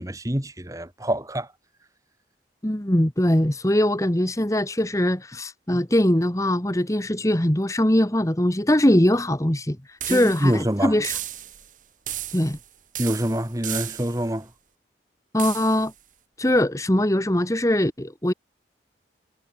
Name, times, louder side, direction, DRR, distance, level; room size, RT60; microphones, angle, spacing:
voice 1, 0.0-1.5 10.1-11.0 13.0-14.5, equal, 20° right, 2.4 m, -26 dB
voice 2, 2.6-11.2 12.3-12.6 15.3-15.9 16.4-18.3, left 1 dB, 20° left, 1.4 m, -21 dB
sound 1, 10.0-10.6 11.0-11.7 12.1-12.6 12.9-14.3 15.4-15.9, right 12 dB, 45° right, 7.1 m, -34 dB
head